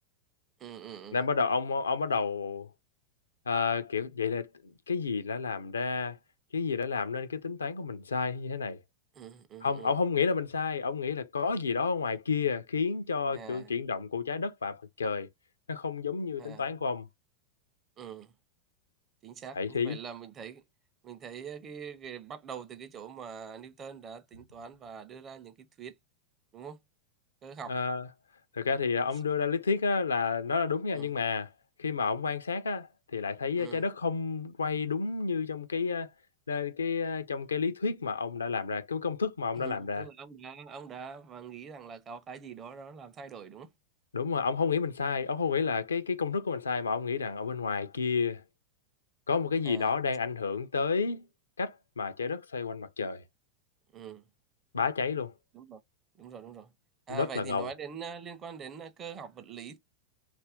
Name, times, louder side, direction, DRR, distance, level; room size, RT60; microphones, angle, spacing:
voice 1, 0.6-1.2 9.1-10.0 13.3-13.7 16.4-16.7 18.0-18.3 19.2-20.6 21.0-26.0 26.5-26.8 27.4-27.7 30.9-31.1 33.6-33.8 39.5-43.7 49.6-49.9 53.9-54.3 55.5-55.8 56.2-56.7 57.1-59.8, right 7 dB, 25° right, 0.5 m, -44 dB
voice 2, 1.1-2.7 3.5-4.5 4.9-6.2 6.5-8.8 9.6-15.3 15.7-17.1 19.6-20.0 27.7-28.1 28.5-31.5 31.8-36.1 36.5-40.0 44.1-48.4 49.3-51.3 51.6-53.2 54.7-55.3 57.1-57.7, left 5 dB, 70° left, 0.4 m, -30 dB
2.5 x 2.1 x 3.5 m
figure-of-eight pair, 90°, 0 cm